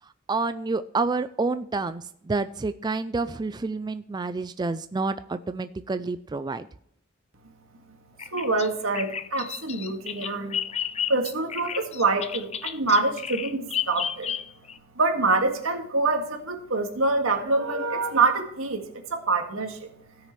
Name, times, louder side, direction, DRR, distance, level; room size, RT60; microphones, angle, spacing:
voice 1, 0.3-6.7, right 3 dB, 20° right, 11 dB, 0.3 m, -28 dB
Bird vocalization bird call bird song, 8.2-14.8, left 8 dB, 30° left, 0.5 m, -32 dB
voice 2, 8.3-10.6 11.1-14.4 15.0-19.9, right 3 dB, 80° right, 4 dB, 2.0 m, -25 dB
17.5 x 6.6 x 3.2 m, 0.72 s
head